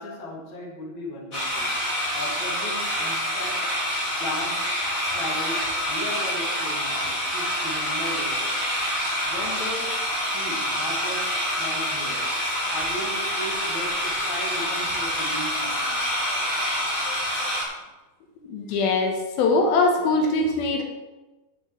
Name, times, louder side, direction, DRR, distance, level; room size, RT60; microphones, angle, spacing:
voice 1, 0.0-1.7 2.1-3.7 4.2-4.7 5.1-8.7 9.2-12.3 12.7-16.0, equal, 40° left, -2 dB, 2.6 m, -36 dB
sound 1, 1.3-17.6, equal, 25° left, 3.4 m, -27 dB
voice 2, 17.1-17.5 18.4-20.8, left 3 dB, 85° left, 3 dB, 3.1 m, -23 dB
8.6 x 6.4 x 7.8 m, 1.1 s
omnidirectional pair, 4.3 m